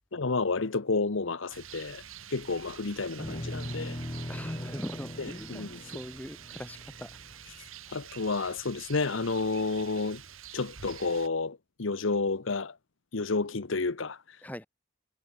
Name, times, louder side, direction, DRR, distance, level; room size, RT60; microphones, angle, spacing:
voice 1, 0.1-2.0 2.3-4.0 5.2-5.8 7.9-10.2 10.5-12.8 13.1-14.4, left 3 dB, 70° left, 1.0 m, -30 dB
Rain, 1.5-11.3, right 9 dB, 90° right, 2.5 m, -47 dB
Deep Intense Bass Drone, 3.2-7.6, left 1 dB, 25° left, 1.9 m, -40 dB
voice 2, 4.3-7.1 14.4-14.7, equal, 10° left, 1.8 m, -41 dB
head